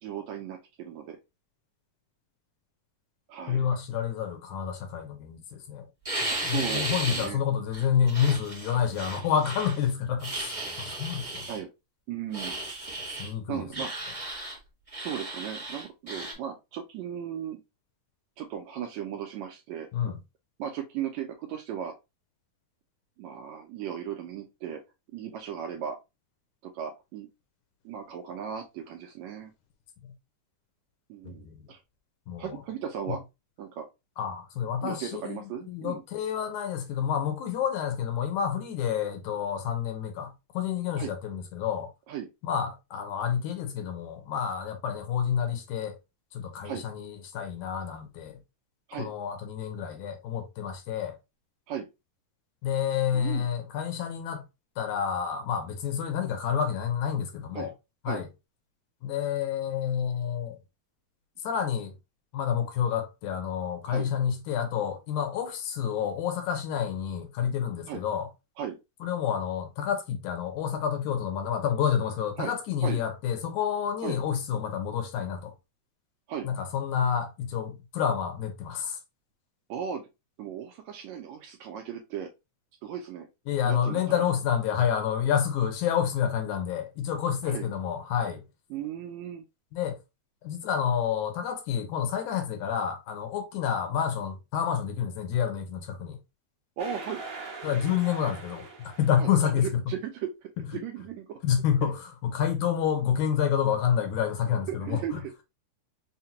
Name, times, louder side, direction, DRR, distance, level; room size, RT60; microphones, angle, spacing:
voice 1, 0.0-1.2 3.3-3.7 6.4-7.4 11.5-11.7 12.1-12.6 13.5-13.9 15.0-17.6 18.4-19.9 20.6-22.0 23.2-24.8 25.1-26.0 26.6-27.3 27.9-29.5 31.1-31.8 32.4-33.2 33.6-33.9 34.8-36.0 41.0-41.1 42.1-42.3 46.6-46.9 48.9-49.1 51.7-51.9 53.1-53.5 57.5-57.7 58.1-58.2 63.9-64.1 67.9-68.0 68.6-68.8 72.4-72.5 72.8-73.0 74.0-74.2 76.3-76.5 79.7-80.1 80.4-82.3 82.8-83.3 83.6-84.3 87.4-87.7 88.7-89.5 96.8-97.2 99.2-101.4 101.8-101.9 104.7-105.2, right 9 dB, 80° right, 1.6 m, -36 dB
voice 2, 3.5-5.9 6.4-11.4 13.1-13.9 19.9-20.2 30.0-30.1 31.2-31.6 32.3-32.6 34.2-41.9 42.5-46.0 46.3-48.4 49.0-51.2 52.6-54.4 54.8-57.7 58.1-58.3 59.0-60.6 61.4-61.9 62.3-68.3 69.0-75.5 76.4-79.0 83.5-88.4 89.7-90.0 90.4-96.2 97.6-99.7 101.4-105.2, left 8 dB, 75° left, 2.1 m, -29 dB
sound 1, 6.0-7.3 7.7-9.8 10.2-11.6 12.3-13.3 13.7-14.6 14.9-16.3, right 2 dB, 60° right, 0.3 m, -35 dB
sound 2, 96.8-99.3, right 4 dB, 40° right, 1.3 m, -42 dB
5.6 x 2.2 x 2.7 m
omnidirectional pair, 3.7 m